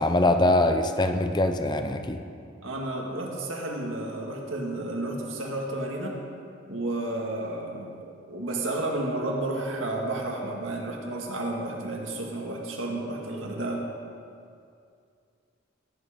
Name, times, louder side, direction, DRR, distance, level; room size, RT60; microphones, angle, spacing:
voice 1, 0.0-2.2, left 1 dB, 20° left, 7 dB, 0.6 m, -23 dB
voice 2, 2.6-6.2 6.7-13.8, right 2 dB, 80° right, 0 dB, 2.0 m, -31 dB
17.0 x 8.3 x 5.2 m, 2.4 s
head